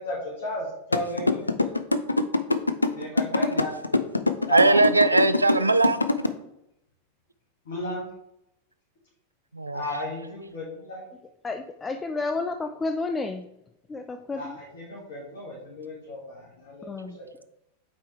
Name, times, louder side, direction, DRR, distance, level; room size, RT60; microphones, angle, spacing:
voice 1, 0.0-1.7 2.9-4.0 4.5-5.2 7.7-8.1 9.7-11.1 14.4-17.3, left 1 dB, 60° left, -5 dB, 1.9 m, -35 dB
sound 1, 0.9-6.3, left 2 dB, 80° left, 0.4 m, -23 dB
voice 2, 4.5-6.0 9.5-9.8, right 2 dB, 80° right, 11 dB, 0.4 m, -20 dB
voice 3, 11.4-13.5 13.9-14.6 16.8-17.2, left 3 dB, 15° left, 7 dB, 0.4 m, -31 dB
8.2 x 4.6 x 3.3 m, 0.81 s
figure-of-eight pair, 90°, 0 cm